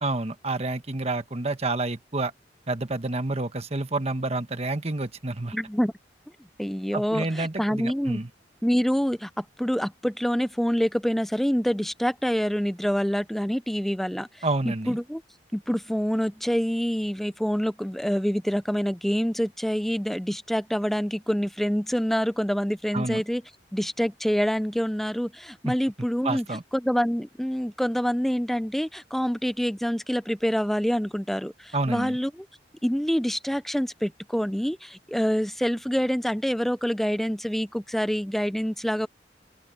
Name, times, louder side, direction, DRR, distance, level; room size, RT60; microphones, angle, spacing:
voice 1, 0.0-2.3 2.7-5.6 6.9-8.3 14.4-15.0 22.9-23.2 25.6-25.7 26.2-26.6 31.7-32.2, right 2 dB, 35° right, 1.4 m, -29 dB
voice 2, 5.5-5.9 6.6-8.2 8.6-15.2 15.5-23.4 23.7-26.4 26.7-32.5 32.8-39.1, equal, ahead, 0.4 m, -26 dB
open air
head